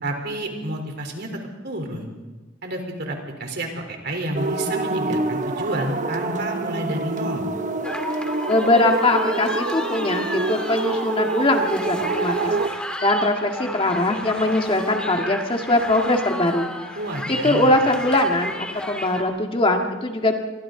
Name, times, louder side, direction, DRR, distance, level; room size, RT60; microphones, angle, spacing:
voice 1, 0.0-1.3 1.6-2.1 2.6-7.5 17.0-17.7, right 1 dB, 55° right, 3 dB, 3.8 m, -29 dB
sound 1, 4.3-12.7, right 3 dB, 40° right, 1.0 m, -26 dB
sound 2, 7.8-19.2, left 1 dB, 5° left, 2.2 m, -33 dB
voice 2, 8.5-16.7 17.3-20.3, left 1 dB, 30° left, 3 dB, 1.9 m, -21 dB
28.0 x 24.0 x 3.9 m, 1.2 s
head